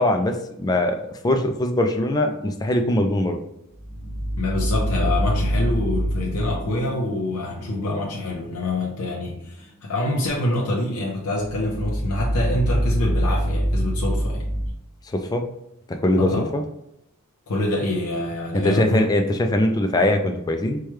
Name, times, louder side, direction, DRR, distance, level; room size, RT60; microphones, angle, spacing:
voice 1, 0.0-3.4 15.1-15.4 15.9-16.6 18.5-20.8, left 1 dB, 15° left, 5 dB, 0.3 m, -22 dB
sound 1, 3.7-8.9 11.4-14.7, equal, 40° right, 1.2 m, -25 dB
voice 2, 4.4-14.4 16.2-16.5 17.5-19.0, left 2 dB, 85° left, -2 dB, 0.6 m, -26 dB
4.7 x 2.2 x 3.0 m, 0.81 s
head